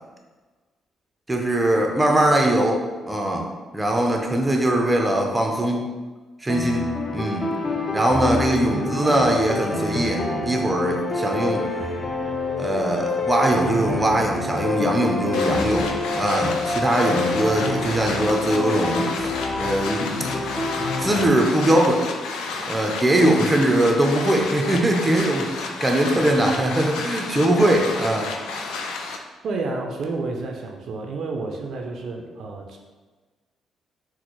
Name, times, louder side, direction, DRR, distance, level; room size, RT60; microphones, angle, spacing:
voice 1, 1.3-2.8 3.1-3.5 3.7-5.9 6.4-7.5 7.9-11.6 12.6-20.4 20.8-22.0 22.7-28.3, right 1 dB, 15° right, 1 dB, 0.5 m, -21 dB
sound 1, 6.5-21.3, left 3 dB, 30° left, 0.6 m, -27 dB
voice 2, 8.6-9.0 29.4-32.8, right 3 dB, 65° right, 2 dB, 0.4 m, -30 dB
sound 2, 15.3-29.2, left 4 dB, 90° left, 0.3 m, -32 dB
4.1 x 2.1 x 2.9 m, 1.3 s
cardioid pair, 90°, 0 cm